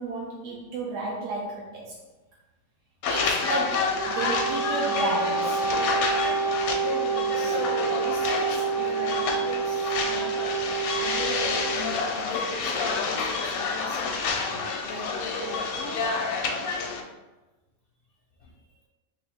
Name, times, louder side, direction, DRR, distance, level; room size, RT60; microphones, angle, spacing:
voice 1, 0.0-2.0 3.1-5.6 14.5-14.6, right 2 dB, 70° right, -3 dB, 0.9 m, -32 dB
sound 1, 3.0-17.0, left 4 dB, 80° left, 1.0 m, -29 dB
Wind instrument woodwind instrument, 3.9-11.9, right 5 dB, 45° right, 0.8 m, -28 dB
voice 2, 6.8-10.3 10.9-14.3 14.8-15.9 18.4-18.5, left 2 dB, 55° left, -3 dB, 0.6 m, -38 dB
3.5 x 2.8 x 3.4 m, 1.1 s
omnidirectional pair, 1.5 m